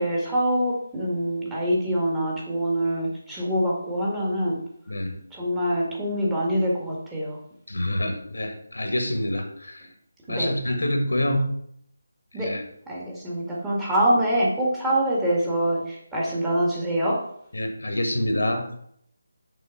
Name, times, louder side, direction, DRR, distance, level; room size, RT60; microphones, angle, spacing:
voice 1, 0.0-4.6 5.3-7.4 10.3-10.5 12.3-12.5 12.9-17.2, right 1 dB, 10° right, -6 dB, 1.8 m, -25 dB
voice 2, 7.7-9.9 10.3-11.4 12.3-12.6 17.5-18.7, left 1 dB, 80° left, 5 dB, 1.5 m, -26 dB
6.3 x 3.9 x 5.7 m, 0.69 s
figure-of-eight pair, 160°, 0 cm